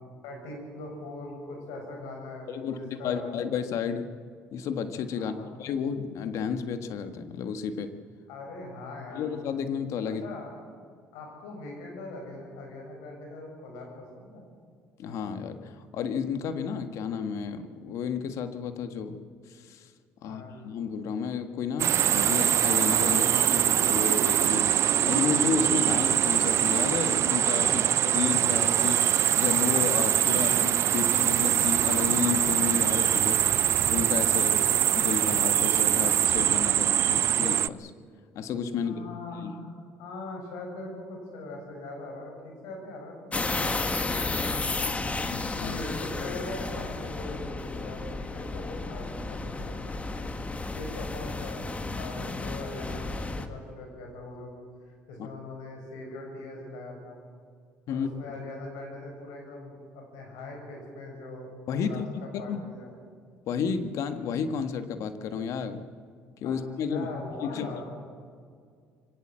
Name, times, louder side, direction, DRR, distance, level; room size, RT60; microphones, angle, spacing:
voice 1, 0.2-3.3 5.1-5.5 8.3-9.3 10.2-10.5 11.1-14.4 20.2-20.6 27.6-28.0 34.2-34.7 38.8-39.7 40.0-44.9 45.6-50.3 50.7-51.6 52.0-54.6 54.8-57.2 57.9-62.9 66.4-66.6 66.9-67.8, left 2 dB, 85° left, 2 dB, 7.0 m, -41 dB
voice 2, 2.5-2.8 3.0-4.1 4.5-8.0 9.1-10.2 15.0-19.9 20.2-24.8 25.0-33.4 33.9-34.6 34.9-37.9 38.3-39.0 39.4-39.5 45.3-45.8 57.9-58.1 61.7-62.6 63.5-65.8 66.4-67.1 67.4-67.8, left 6 dB, 70° left, 9 dB, 1.6 m, -32 dB
sound 1, 21.8-37.7, right 11 dB, 55° right, 0.5 m, -23 dB
sound 2, 43.3-53.5, left 3 dB, 25° left, 1.8 m, -33 dB
24.0 x 17.5 x 7.7 m, 2.1 s
supercardioid pair, 75°, 6 cm